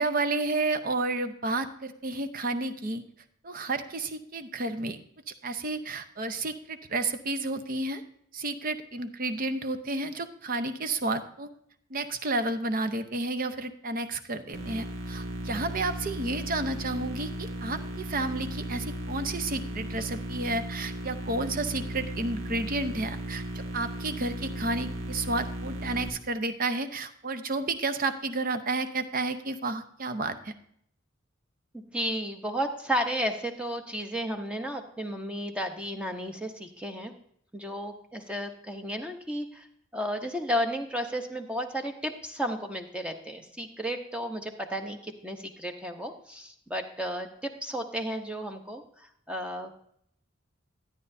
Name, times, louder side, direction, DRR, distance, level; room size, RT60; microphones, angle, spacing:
voice 1, 0.0-3.0 3.4-5.0 5.4-8.0 8.3-11.5 11.9-30.5, right 2 dB, 45° right, 10 dB, 0.7 m, -31 dB
sound 1, 14.5-26.1, right 1 dB, 75° right, 1.8 m, -36 dB
voice 2, 31.7-37.1 37.5-39.7 39.9-49.9, equal, 5° right, 5 dB, 0.8 m, -33 dB
12.5 x 9.6 x 2.7 m, 0.67 s
head